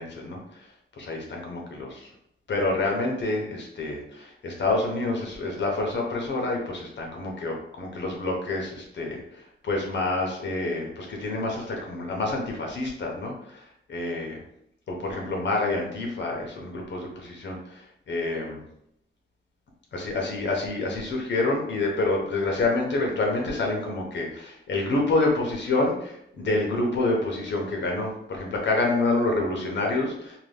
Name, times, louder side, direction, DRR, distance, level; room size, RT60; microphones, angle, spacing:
voice 1, 0.0-2.1 2.5-14.4 14.9-18.6 19.9-30.4, left 2 dB, 65° left, 0 dB, 0.8 m, -28 dB
2.8 x 2.2 x 3.3 m, 0.75 s
wide cardioid pair, 175°, 20 cm